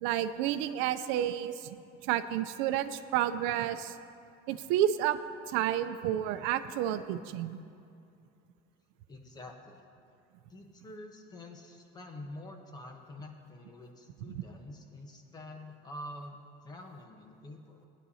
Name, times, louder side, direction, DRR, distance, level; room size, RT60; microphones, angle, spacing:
voice 1, 0.0-1.8 2.0-3.9 4.5-5.2 5.5-7.6 14.3-14.4, right 11 dB, 85° right, 11 dB, 0.5 m, -30 dB
voice 2, 9.1-9.8 10.5-17.9, left 1 dB, 20° left, 3 dB, 1.1 m, -47 dB
18.5 x 10.0 x 2.8 m, 2.5 s
cardioid pair, 155°, 19 cm